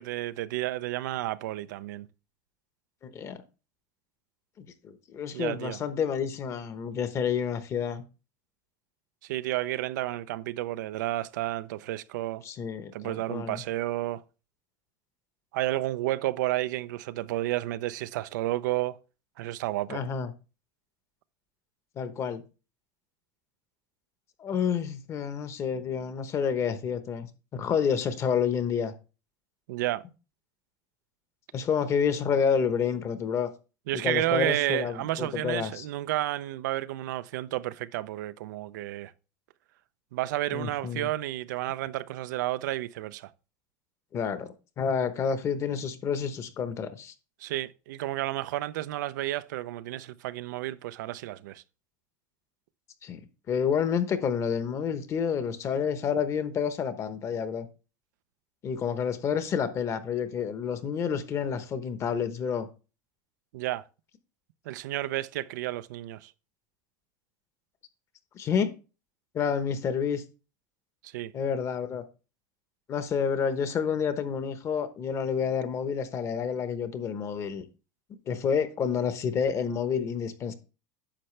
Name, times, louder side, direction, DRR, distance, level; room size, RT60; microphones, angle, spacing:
voice 1, 0.0-2.1 5.3-5.8 9.2-12.4 12.9-14.2 15.5-19.0 19.4-20.0 29.7-30.0 33.9-39.1 40.1-43.3 47.4-51.6 63.5-63.8 64.7-66.3 71.0-71.3, right 15 dB, 90° right, 0.5 m, -31 dB
voice 2, 3.0-3.4 4.6-8.0 12.4-13.6 19.9-20.3 22.0-22.4 24.4-28.9 31.5-33.5 34.0-35.8 40.5-41.1 44.1-47.1 53.0-53.2 53.5-57.7 58.6-62.7 68.3-68.7 69.3-70.2 71.3-72.0 72.9-77.7 78.3-80.5, left 7 dB, 30° left, 1.0 m, -29 dB
10.0 x 6.5 x 3.2 m
supercardioid pair, 145°, 10 cm